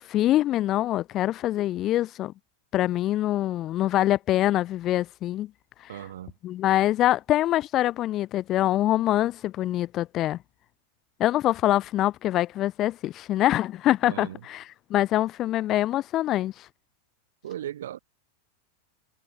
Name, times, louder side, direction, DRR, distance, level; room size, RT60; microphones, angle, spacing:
voice 1, 0.0-2.3 2.7-5.5 6.4-10.4 11.2-14.6 14.9-16.6, left 14 dB, 35° left, 1.5 m, -24 dB
voice 2, 5.9-6.4 14.0-14.4 17.4-18.0, right 12 dB, 60° right, 2.4 m, -37 dB
figure-of-eight pair, 90°, 0 cm